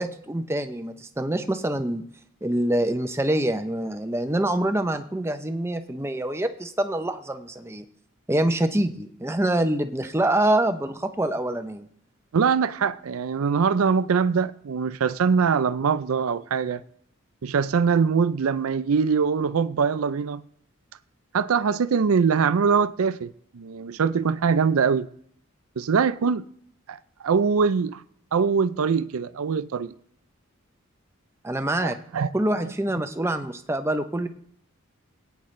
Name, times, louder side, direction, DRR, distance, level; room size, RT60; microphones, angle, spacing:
voice 1, 0.0-2.0 2.4-7.8 8.3-11.9 31.4-32.0 32.3-34.3, right 1 dB, 10° right, 0.6 m, -25 dB
voice 2, 12.3-16.8 17.4-20.4 21.3-25.1 25.8-26.5 26.9-28.0 28.3-29.9 31.8-32.3, right 6 dB, 85° right, 0.5 m, -23 dB
19.0 x 9.4 x 3.2 m
head